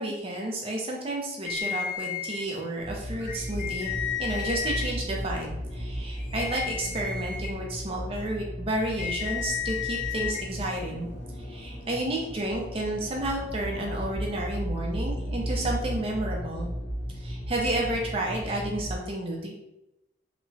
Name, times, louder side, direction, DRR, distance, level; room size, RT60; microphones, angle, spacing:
voice 1, 0.0-3.9 4.2-11.1 11.4-16.7 17.2-19.5, right 1 dB, 30° right, -1 dB, 0.5 m, -31 dB
sound 1, 1.5-2.4 3.2-4.9 6.2-7.5 8.8-10.4, left 8 dB, 45° left, 0.6 m, -33 dB
sound 2, 2.8-19.0, equal, 75° left, 1.0 m, -35 dB
2.9 x 2.2 x 2.6 m, 0.88 s
head